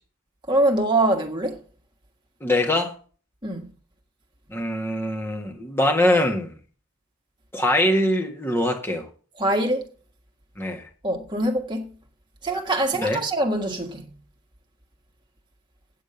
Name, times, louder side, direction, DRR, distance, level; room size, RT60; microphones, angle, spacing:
voice 1, 0.5-1.6 3.4-3.6 9.4-9.8 11.0-11.8 12.4-14.1, right 1 dB, 20° right, 1.6 m, -23 dB
voice 2, 2.4-3.0 4.5-6.5 7.5-9.1 10.6-10.9 12.9-13.3, left 1 dB, 10° left, 1.6 m, -23 dB
8.7 x 7.7 x 6.6 m
head